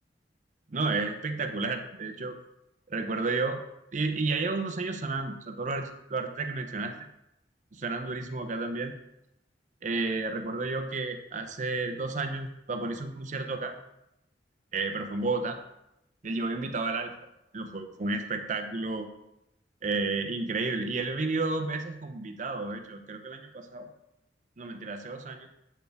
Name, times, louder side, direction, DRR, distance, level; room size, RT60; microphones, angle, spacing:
voice 1, 0.7-2.3 2.9-3.6 3.9-6.9 7.7-9.0 9.8-13.7 14.7-15.6 16.2-17.1 17.5-19.1 19.8-23.9 24.6-25.5, right 3 dB, 45° right, 6 dB, 0.6 m, -31 dB
8.0 x 4.2 x 3.5 m, 0.85 s
head